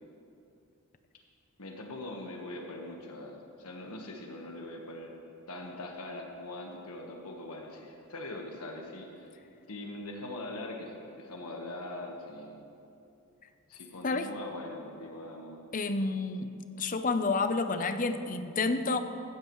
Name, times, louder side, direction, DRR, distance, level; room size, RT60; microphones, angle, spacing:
voice 1, 1.6-5.1 5.5-9.3 9.7-12.6 13.7-15.6, left 2 dB, 90° left, 1 dB, 1.4 m, -42 dB
voice 2, 15.7-16.5 16.8-19.0, left 3 dB, 40° left, 9 dB, 0.7 m, -29 dB
15.5 x 14.5 x 3.2 m, 2.6 s
head